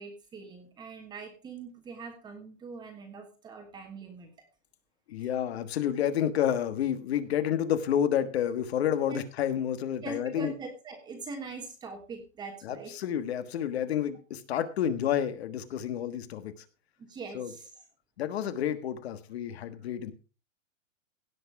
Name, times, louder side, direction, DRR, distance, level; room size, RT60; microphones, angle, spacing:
voice 1, 0.0-4.3 9.1-9.2 10.0-12.9 17.0-17.7, right 4 dB, 10° right, 4 dB, 1.3 m, -42 dB
voice 2, 5.1-10.5 12.6-16.5 17.3-17.5 18.2-20.1, left 9 dB, 50° left, 12 dB, 1.5 m, -30 dB
17.0 x 6.1 x 4.7 m, 0.33 s
hypercardioid pair, 170°, 39 cm